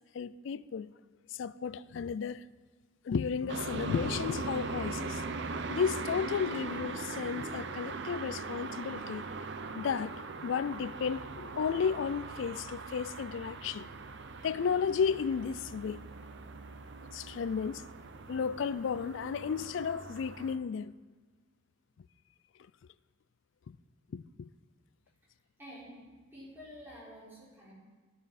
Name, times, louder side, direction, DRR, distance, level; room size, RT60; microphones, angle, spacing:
voice 1, 0.1-0.9 1.3-2.4 3.0-5.2 5.7-9.3 9.7-10.2 10.4-13.9 14.4-16.0 17.1-17.8 18.3-20.9 24.1-24.5, left 6 dB, 60° left, 0.3 m, -33 dB
sound 1, 3.5-20.6, right 3 dB, 55° right, 0.6 m, -40 dB
voice 2, 25.6-27.7, equal, 10° right, 4.6 m, -49 dB
14.0 x 10.0 x 4.2 m
head